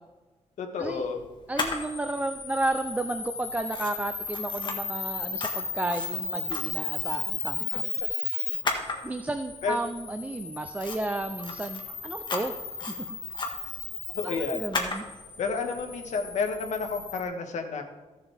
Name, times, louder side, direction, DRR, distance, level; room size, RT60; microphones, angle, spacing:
voice 1, 0.6-1.2 9.6-9.8 14.1-14.6 15.4-17.8, left 5 dB, 75° left, 4 dB, 1.5 m, -30 dB
Camera, 1.5-17.2, left 4 dB, 40° left, 1.5 m, -34 dB
voice 2, 1.5-7.8 9.0-12.5 14.2-15.0, right 2 dB, 10° right, 6 dB, 0.4 m, -32 dB
15.0 x 7.2 x 3.4 m, 1.2 s
wide cardioid pair, 155°, 12 cm